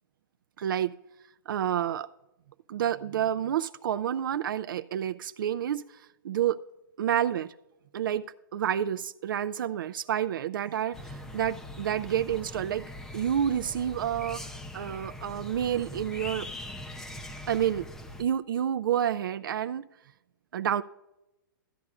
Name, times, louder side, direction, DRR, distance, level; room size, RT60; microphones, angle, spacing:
voice 1, 0.6-0.9 1.5-2.1 2.7-6.6 7.0-7.5 7.9-8.2 8.5-12.8 13.1-14.4 14.7-16.5 17.5-17.9 18.2-19.8 20.5-20.8, right 10 dB, 70° right, 0.4 m, -29 dB
sound 1, 10.9-18.2, left 1 dB, 5° left, 0.4 m, -42 dB
14.0 x 9.5 x 2.4 m
hypercardioid pair, 155°, 11 cm